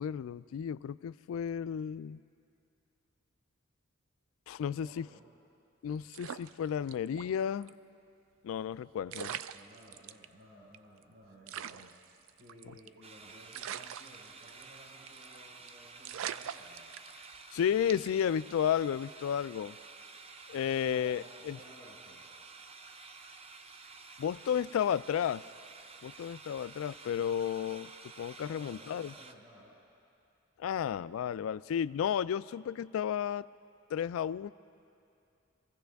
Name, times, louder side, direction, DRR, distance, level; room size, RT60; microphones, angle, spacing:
voice 1, 0.0-2.2 4.5-5.1 5.8-7.7 8.4-9.3 17.5-19.8 20.5-21.6 24.2-25.4 26.0-27.9 28.2-29.1 30.6-33.5 33.9-34.5, left 8 dB, 90° left, 17 dB, 0.3 m, -32 dB
voice 2, 4.6-5.3 9.0-16.9 20.5-22.2 28.4-29.8, equal, 60° right, -9 dB, 4.6 m, -56 dB
sound 1, 6.1-7.3 7.6-7.7 8.7-8.8 9.1-10.3 10.7-10.8 11.0-11.1 11.5-13.0 13.5-14.8 15.1-15.4 15.7-15.8 16.0-17.4 17.9-18.2, right 9 dB, 85° right, 0.4 m, -42 dB
sound 2, 13.0-29.3, right 4 dB, 30° right, 0.6 m, -51 dB
24.0 x 15.5 x 3.5 m, 2.7 s
head